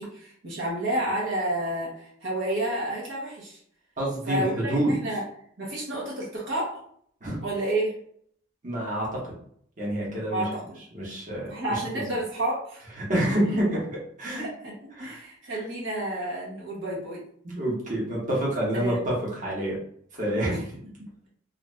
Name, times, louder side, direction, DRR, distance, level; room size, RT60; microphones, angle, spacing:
voice 1, 0.0-3.6 4.3-5.2 5.6-6.8 7.4-8.0 10.3-10.8 11.5-12.8 13.3-13.6 14.4-17.2 18.7-19.1 20.5-21.3, right 1 dB, 70° right, -5 dB, 0.9 m, -30 dB
voice 2, 4.0-4.9 7.2-7.4 8.6-9.2 9.8-10.4 10.9-12.0 13.0-14.4 15.0-15.2 17.4-19.7 20.2-20.5, right 1 dB, 40° right, -5 dB, 1.1 m, -28 dB
2.5 x 2.5 x 3.2 m, 0.63 s
head